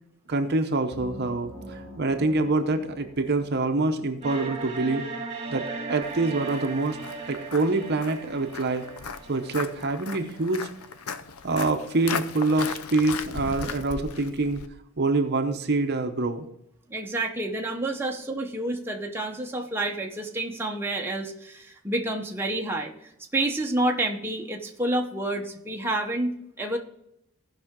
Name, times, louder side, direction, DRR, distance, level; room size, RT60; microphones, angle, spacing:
voice 1, 0.3-5.0 5.5-7.0 7.3-8.8 9.3-10.7 11.4-14.6 15.0-16.5, right 3 dB, 50° right, 7 dB, 0.8 m, -26 dB
sound 1, 0.9-4.5, equal, 60° left, 3.1 m, -45 dB
sound 2, 4.2-11.2, right 3 dB, 30° right, 1.3 m, -37 dB
Walk footsteps, 6.0-14.7, left 5 dB, 80° left, 0.6 m, -37 dB
voice 2, 16.9-22.9 23.3-26.8, right 1 dB, 10° right, 1 dB, 0.9 m, -29 dB
16.0 x 5.7 x 3.7 m, 0.79 s
head